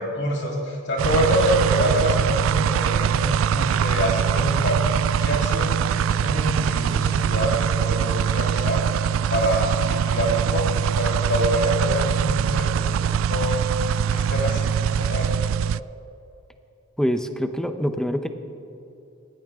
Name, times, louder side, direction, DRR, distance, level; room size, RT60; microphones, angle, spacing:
voice 1, 0.0-4.8 5.2-8.8 9.3-13.6 14.1-15.3, equal, 60° left, -3 dB, 3.5 m, -25 dB
sound 1, 1.0-15.8, right 8 dB, 75° right, 0.3 m, -23 dB
voice 2, 17.0-18.3, equal, 5° left, 8 dB, 0.8 m, -25 dB
19.5 x 15.5 x 3.7 m, 2.8 s
head